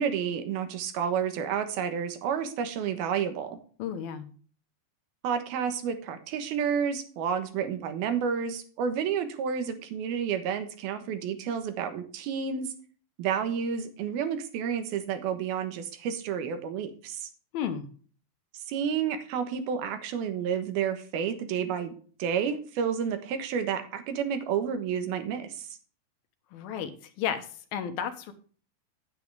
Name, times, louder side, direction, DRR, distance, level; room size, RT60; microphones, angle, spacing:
voice 1, 0.0-3.6 5.2-12.7 13.2-17.3 18.5-25.7, right 7 dB, 80° right, 8 dB, 3.2 m, -30 dB
voice 2, 3.8-4.3 17.5-17.9 26.5-26.9 27.2-28.3, left 8 dB, 80° left, 8 dB, 2.9 m, -32 dB
9.7 x 9.6 x 3.4 m, 0.42 s
omnidirectional pair, 4.3 m